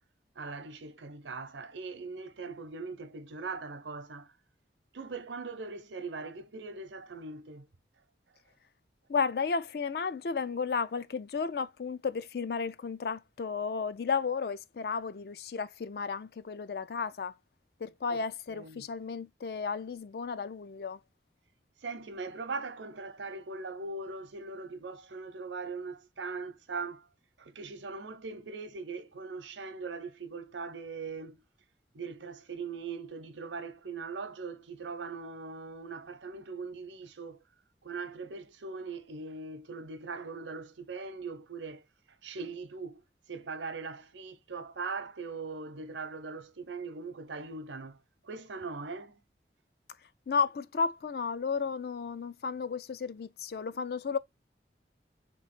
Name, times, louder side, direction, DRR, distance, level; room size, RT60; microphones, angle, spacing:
voice 1, 0.3-4.4 4.9-7.7 18.1-18.9 21.8-27.1 27.4-31.4 31.9-37.4 37.8-41.9 42.2-43.0 43.3-49.2, right 4 dB, 85° right, 0.7 m, -40 dB
voice 2, 9.1-17.3 17.8-21.0 50.3-54.2, left 5 dB, 55° left, 0.4 m, -33 dB
3.6 x 3.0 x 4.1 m
head